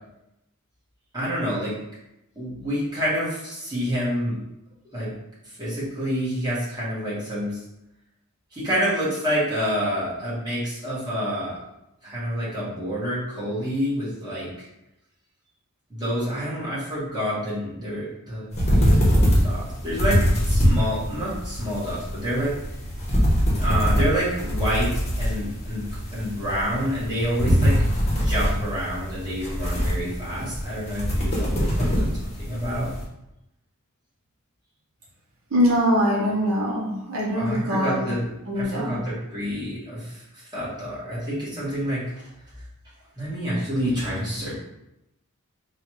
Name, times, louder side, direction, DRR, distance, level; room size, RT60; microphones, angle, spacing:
voice 1, 1.1-1.8 2.3-4.4 4.9-5.1 5.4-7.6 8.5-11.6 12.0-14.7 15.9-22.5 23.6-27.8 28.1-32.9 37.4-38.2 38.5-42.0 43.1-44.5, equal, 20° right, -9 dB, 1.4 m, -28 dB
sound 1, 18.5-33.0, equal, 30° left, 0.9 m, -23 dB
voice 2, 35.5-38.1 38.5-39.0, equal, 65° right, -4 dB, 0.8 m, -23 dB
3.7 x 2.4 x 3.0 m, 0.88 s
head